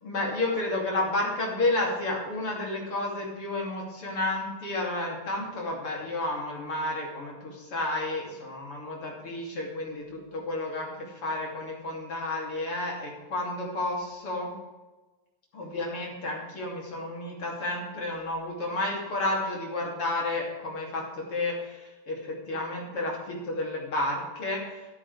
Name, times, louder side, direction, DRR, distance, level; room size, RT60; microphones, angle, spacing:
voice 1, 0.0-10.9 11.2-14.5 15.5-24.6, left 2 dB, 40° left, -3 dB, 3.3 m, -31 dB
13.5 x 13.0 x 3.4 m, 1.1 s
omnidirectional pair, 4.5 m